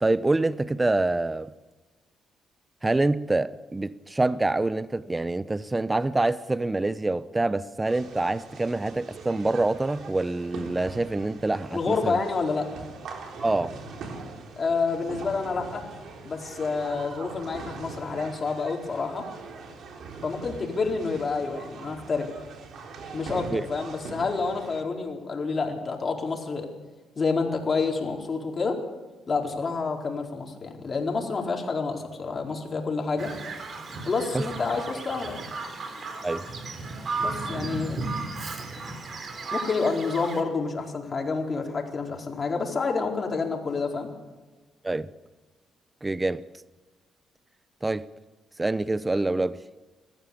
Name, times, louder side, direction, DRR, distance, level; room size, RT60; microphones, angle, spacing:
voice 1, 0.0-1.5 2.8-12.2 13.4-13.8 23.5-23.6 34.3-34.5 36.2-36.5 44.8-45.1 46.0-46.4 47.8-48.1 48.6-49.6, right 2 dB, 15° right, 0.7 m, -26 dB
sound 1, 7.8-24.8, right 4 dB, 65° right, 3.7 m, -42 dB
voice 2, 11.7-12.7 14.6-15.9 16.2-19.3 20.2-22.3 23.1-26.7 27.1-28.8 29.3-33.3 34.0-35.3 37.2-38.0 39.5-44.1, left 4 dB, 40° left, 4.5 m, -28 dB
Bird vocalization bird call bird song, 33.2-40.4, right 3 dB, 45° right, 3.6 m, -34 dB
21.0 x 14.5 x 8.6 m
cardioid pair, 90°, 0 cm